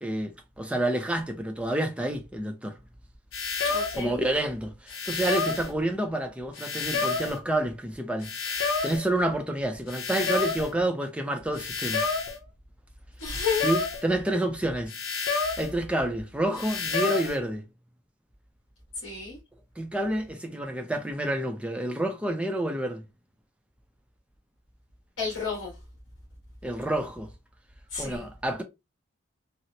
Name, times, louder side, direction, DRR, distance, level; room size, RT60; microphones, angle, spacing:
voice 1, 0.0-2.8 4.0-12.0 13.6-14.9 15.6-17.6 19.8-23.0 26.6-27.3 28.0-28.6, right 1 dB, 5° right, 0.4 m, -29 dB
sound 1, 3.3-4.1 4.9-5.7 6.6-7.4 8.2-9.1 9.9-10.7 11.6-12.4 13.2-14.1 14.9-15.7 16.6-17.4, left 4 dB, 80° left, 0.8 m, -29 dB
voice 2, 3.6-4.2 13.2-13.7 19.0-19.4 25.2-25.7 27.9-28.3, left 5 dB, 60° left, 1.5 m, -31 dB
4.2 x 2.0 x 2.8 m
head